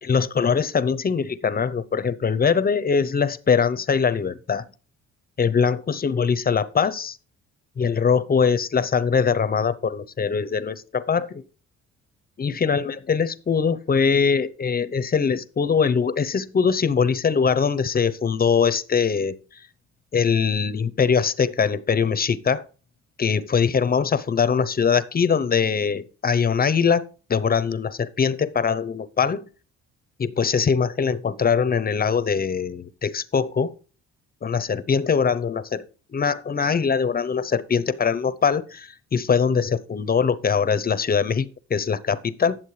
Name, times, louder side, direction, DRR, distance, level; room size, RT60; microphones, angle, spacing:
voice 1, 0.0-4.6 5.4-7.2 7.8-11.4 12.4-19.6 20.1-22.7 23.2-27.0 27.3-29.5 30.2-33.7 34.4-42.6, left 6 dB, 30° left, 0.7 m, -22 dB
10.5 x 7.3 x 3.2 m
cardioid pair, 90°, 30 cm